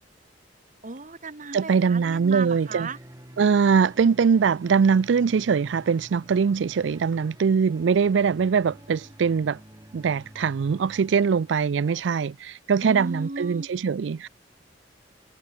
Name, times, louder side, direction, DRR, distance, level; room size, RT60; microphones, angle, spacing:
voice 1, 0.8-3.0 12.8-13.7, right 3 dB, 45° right, 1.4 m, -35 dB
voice 2, 1.5-2.9 3.4-9.6 9.9-14.3, right 6 dB, 75° right, 0.4 m, -22 dB
sound 1, 2.0-12.0, right 1 dB, 20° right, 2.0 m, -49 dB
head